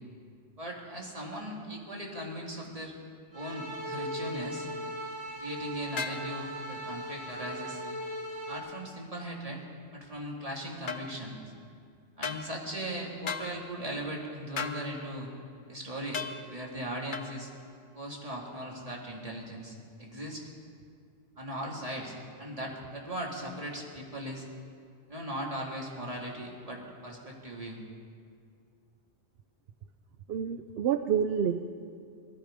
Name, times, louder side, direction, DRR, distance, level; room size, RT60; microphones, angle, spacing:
voice 1, 0.6-2.9 3.3-4.7 5.4-7.8 8.5-9.6 9.9-11.4 12.2-15.3 15.7-16.2 16.5-17.5 17.9-20.5 21.4-24.5 25.1-27.8, equal, 30° right, -2 dB, 2.5 m, -38 dB
sound 1, 3.3-8.6, equal, 85° right, 3.6 m, -38 dB
sound 2, 6.0-6.2 10.9-11.0 12.2-12.4 13.3-13.5 14.6-14.8 16.1-16.4 17.1-17.3, left 6 dB, 50° left, 0.9 m, -34 dB
voice 2, 30.3-31.6, right 8 dB, 65° right, 8 dB, 0.8 m, -28 dB
19.5 x 13.0 x 5.1 m, 2.2 s
omnidirectional pair, 1.2 m